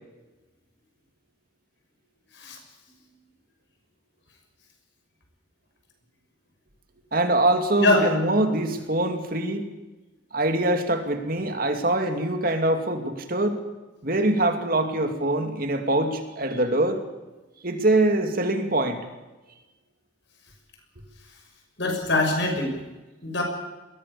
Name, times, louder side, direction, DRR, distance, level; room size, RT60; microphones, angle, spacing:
voice 1, 7.1-9.7 10.3-13.6 14.0-17.0 17.6-19.0, right 1 dB, 45° right, 6 dB, 2.6 m, -24 dB
voice 2, 21.8-22.7 23.2-23.4, left 2 dB, 60° left, 3 dB, 6.1 m, -22 dB
21.5 x 17.5 x 8.6 m, 1.1 s
head